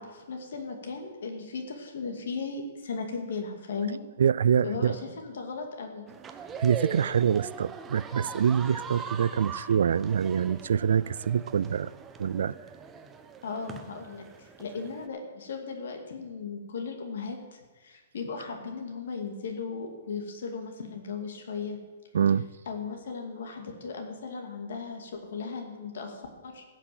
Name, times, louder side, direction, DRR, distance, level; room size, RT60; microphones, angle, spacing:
voice 1, 0.0-4.0 4.6-6.1 13.4-21.8 22.7-26.6, left 4 dB, 65° left, 2.4 m, -37 dB
voice 2, 4.2-5.0 6.6-11.9 12.2-12.5 22.1-22.5, right 8 dB, 70° right, 0.3 m, -25 dB
sound 1, 6.1-15.1, right 6 dB, 10° right, 0.5 m, -42 dB
16.0 x 6.1 x 7.9 m
hypercardioid pair, 180°, 0 cm